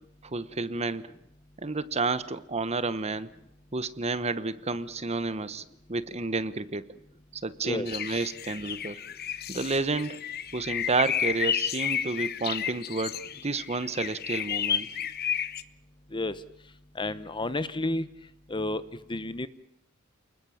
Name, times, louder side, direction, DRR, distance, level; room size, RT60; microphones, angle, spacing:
voice 1, 0.2-1.1 1.6-3.3 3.7-5.6 5.9-6.8 7.3-9.0 9.5-10.2 10.5-14.9, right 3 dB, 30° right, 14 dB, 1.0 m, -30 dB
sound 1, 7.9-15.6, left 9 dB, 50° left, 1.0 m, -32 dB
voice 2, 17.0-18.1 18.5-18.8 19.1-19.5, left 2 dB, 25° left, 14 dB, 0.9 m, -30 dB
29.5 x 20.5 x 7.2 m, 0.79 s
head